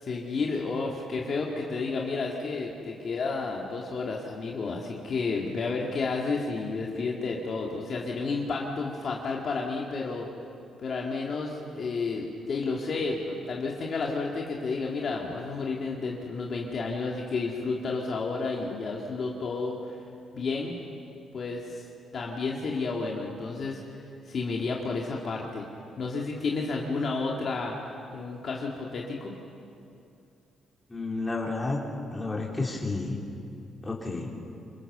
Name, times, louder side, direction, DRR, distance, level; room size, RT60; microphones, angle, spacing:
voice 1, 0.0-10.3 10.8-20.0 20.3-20.8 21.3-21.8 22.1-23.8 24.3-25.7 26.0-27.8 28.1-29.3, left 4 dB, 45° left, -2 dB, 2.4 m, -31 dB
voice 2, 30.9-31.8 32.1-33.2 33.8-34.3, left 3 dB, 15° left, -3 dB, 3.8 m, -31 dB
27.0 x 24.0 x 6.9 m, 2.6 s
cardioid pair, 150°, 0 cm